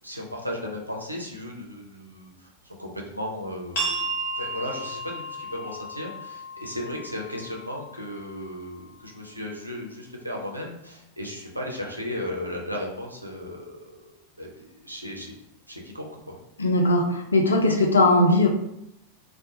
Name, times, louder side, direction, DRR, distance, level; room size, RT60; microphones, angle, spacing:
voice 1, 0.0-4.0 4.3-14.1 14.4-15.3 15.7-16.4, left 1 dB, 85° right, 0 dB, 0.5 m, -35 dB
sound 1, 3.7-9.1, right 2 dB, 55° left, 0.8 m, -34 dB
voice 2, 16.6-18.5, left 2 dB, 75° left, 2 dB, 0.4 m, -19 dB
2.3 x 2.1 x 2.7 m, 0.82 s
figure-of-eight pair, 90°, 0 cm